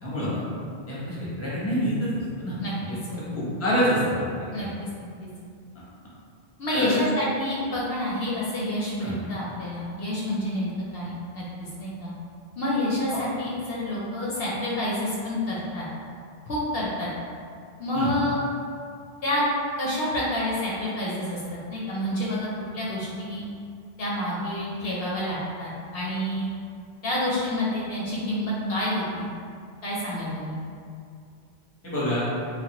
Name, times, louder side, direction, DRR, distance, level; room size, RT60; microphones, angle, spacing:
voice 1, 0.0-0.4 0.9-2.1 2.4-2.9 3.3-4.6 6.7-7.0 9.0-9.1 13.1-13.2 17.9-18.1 31.8-32.3, equal, 15° left, -9 dB, 0.7 m, -27 dB
voice 2, 5.0-5.3 6.6-12.1 12.6-15.8 16.5-17.1 17.8-18.4 19.2-19.4 19.8-21.4 21.7-23.4 24.0-26.5 27.0-29.3 29.8-30.6, left 1 dB, 65° left, -6 dB, 0.8 m, -28 dB
3.2 x 2.1 x 2.9 m, 2.3 s
omnidirectional pair, 1.1 m